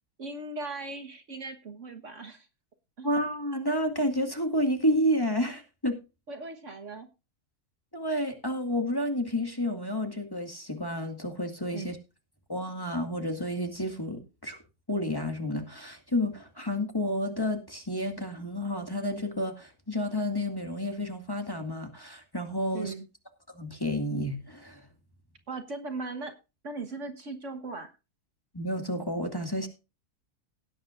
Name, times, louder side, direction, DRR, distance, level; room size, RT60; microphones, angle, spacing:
voice 1, 0.2-2.5 3.0-3.1 6.3-7.1 11.7-11.9 22.7-23.1 25.5-26.3 26.6-27.9, right 3 dB, 55° right, 1.6 m, -38 dB
voice 2, 3.0-6.0 7.9-12.0 12.5-14.6 14.9-22.9 23.5-24.9 28.5-29.7, equal, 15° left, 2.0 m, -30 dB
17.5 x 9.4 x 2.5 m
omnidirectional pair, 1.6 m